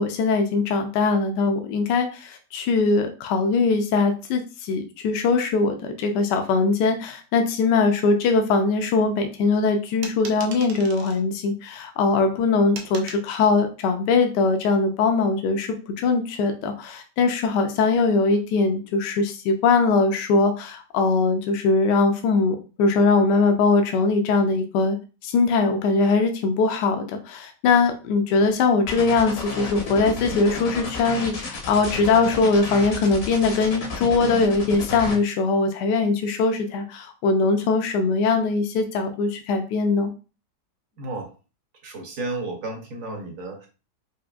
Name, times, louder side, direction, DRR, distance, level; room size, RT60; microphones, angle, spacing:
voice 1, 0.0-25.0 25.2-40.1, left 4 dB, 75° left, 6 dB, 1.1 m, -21 dB
sound 1, 10.0-11.2 12.7-13.3, right 5 dB, 80° right, 1.3 m, -38 dB
sound 2, 28.9-35.2, left 3 dB, 50° left, 0.8 m, -32 dB
voice 2, 41.0-41.3 41.8-43.7, right 2 dB, 55° right, 2 dB, 1.1 m, -32 dB
5.0 x 2.6 x 2.3 m, 0.33 s
omnidirectional pair, 1.9 m